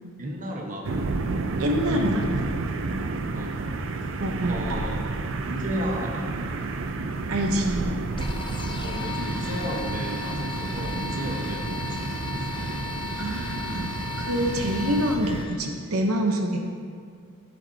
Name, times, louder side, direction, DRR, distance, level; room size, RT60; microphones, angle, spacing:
voice 1, 0.2-0.9 1.9-2.4 3.3-3.6 4.0-4.1 4.5-4.9 5.4-6.3 8.8-12.5, equal, 35° right, 0 dB, 1.1 m, -33 dB
sound 1, 0.8-15.5, right 3 dB, 60° right, 0.5 m, -30 dB
voice 2, 1.6-2.3 4.2-4.8 7.3-7.9 13.2-16.6, equal, 85° right, 2 dB, 0.9 m, -26 dB
sound 2, 8.2-15.6, left 3 dB, 25° left, 0.6 m, -36 dB
14.5 x 7.4 x 2.8 m, 2.2 s
head